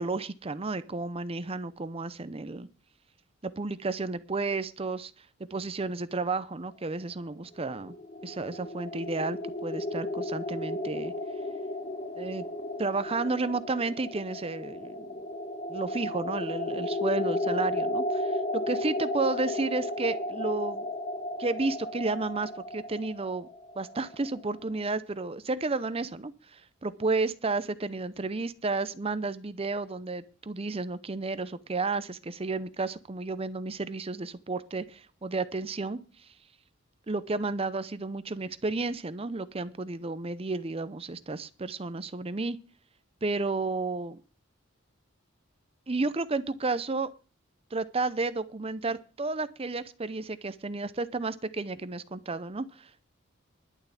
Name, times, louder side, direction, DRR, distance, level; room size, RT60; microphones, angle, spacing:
voice 1, 0.0-2.7 3.4-5.1 5.5-7.9 8.2-11.1 12.2-12.5 12.8-15.0 15.7-20.9 21.4-23.5 23.8-36.3 37.1-42.6 43.2-44.2 45.9-47.1 47.7-53.0, right 3 dB, 30° right, 14 dB, 0.6 m, -32 dB
sound 1, 7.6-24.5, left 1 dB, 40° left, 2.4 m, -34 dB
11.5 x 6.8 x 8.4 m, 0.35 s
head